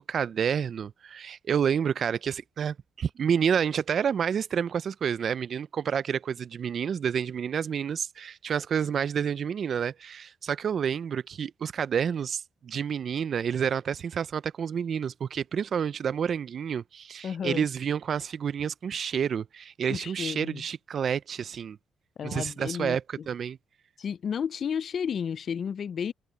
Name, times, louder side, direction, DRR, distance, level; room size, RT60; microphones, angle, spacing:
voice 1, 0.0-21.8 22.2-23.6, right 7 dB, 55° right, 0.5 m, -29 dB
voice 2, 17.2-17.6 19.9-20.6 22.2-23.3 24.0-26.1, left 7 dB, 55° left, 0.5 m, -32 dB
cardioid pair, 90°, 0 cm